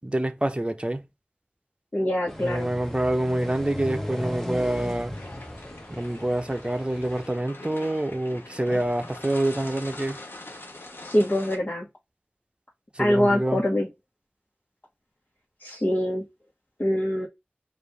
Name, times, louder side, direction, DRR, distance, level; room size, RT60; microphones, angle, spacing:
voice 1, 0.0-1.1 2.4-5.2 5.9-10.2 12.9-13.6, right 1 dB, 30° right, 0.7 m, -27 dB
voice 2, 1.9-2.7 11.0-11.9 13.0-13.9 15.6-16.2 16.8-17.3, left 1 dB, 45° left, 1.3 m, -24 dB
sound 1, 2.3-7.3, left 1 dB, 10° left, 0.9 m, -36 dB
sound 2, 5.1-11.6, left 2 dB, 75° left, 1.0 m, -43 dB
4.9 x 2.6 x 3.2 m
wide cardioid pair, 45°, 4 cm